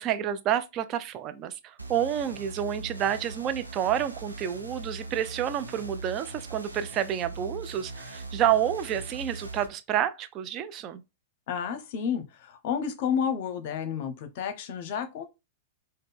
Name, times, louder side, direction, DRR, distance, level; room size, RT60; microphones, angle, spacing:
voice 1, 0.0-11.0, right 10 dB, 35° right, 0.4 m, -29 dB
sound 1, 1.8-9.7, right 3 dB, 85° right, 0.6 m, -40 dB
voice 2, 11.5-15.2, left 7 dB, 50° left, 0.7 m, -31 dB
3.9 x 2.1 x 3.5 m
figure-of-eight pair, 100°, 0 cm